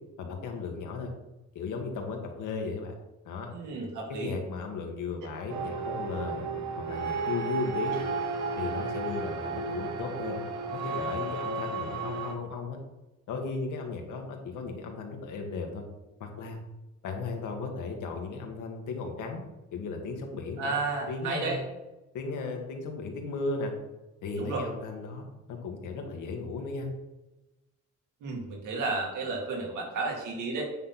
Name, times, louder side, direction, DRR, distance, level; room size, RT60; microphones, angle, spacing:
voice 1, 0.2-1.1 1.5-2.9 3.2-3.5 4.1-6.5 6.8-8.1 8.6-10.4 10.7-12.8 13.3-15.8 16.2-16.6 17.0-19.4 19.7-20.7 21.1-21.6 22.1-23.7 24.2-26.9, left 4 dB, 80° left, 3 dB, 1.8 m, -35 dB
voice 2, 3.5-4.4 20.6-21.6 24.4-24.6 28.2-30.7, right 3 dB, 85° right, 0 dB, 2.6 m, -32 dB
sound 1, 5.5-12.3, right 4 dB, 65° right, 1.3 m, -33 dB
9.3 x 4.0 x 6.0 m, 1.0 s
cardioid pair, 90°, 30 cm